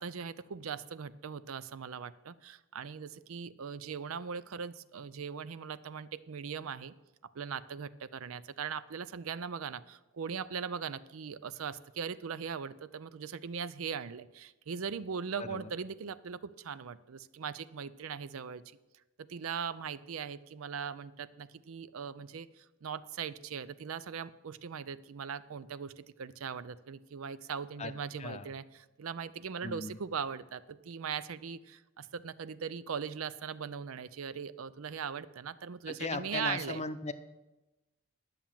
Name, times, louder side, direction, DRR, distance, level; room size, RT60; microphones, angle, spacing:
voice 1, 0.0-6.9 7.3-18.6 19.2-36.8, right 6 dB, 75° right, 15 dB, 0.5 m, -40 dB
voice 2, 15.4-15.7 27.8-27.9 28.2-28.5 29.6-30.0 36.0-37.1, left 3 dB, 30° left, 11 dB, 0.6 m, -37 dB
11.0 x 7.2 x 7.3 m, 1.0 s
head